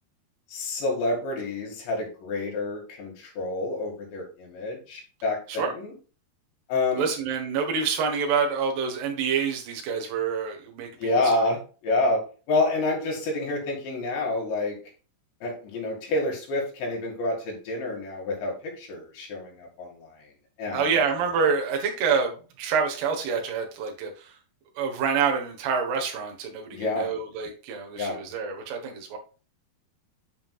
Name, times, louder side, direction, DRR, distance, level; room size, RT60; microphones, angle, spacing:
voice 1, 0.5-5.9 6.7-7.1 11.0-14.8 15.4-20.2 20.6-20.9 26.7-27.1 28.0-28.3, left 2 dB, 85° left, -1 dB, 4.5 m, -28 dB
voice 2, 7.0-11.5 20.7-24.3 24.8-29.2, right 6 dB, 70° right, 3 dB, 3.3 m, -27 dB
10.5 x 5.3 x 2.4 m, 0.37 s
omnidirectional pair, 4.9 m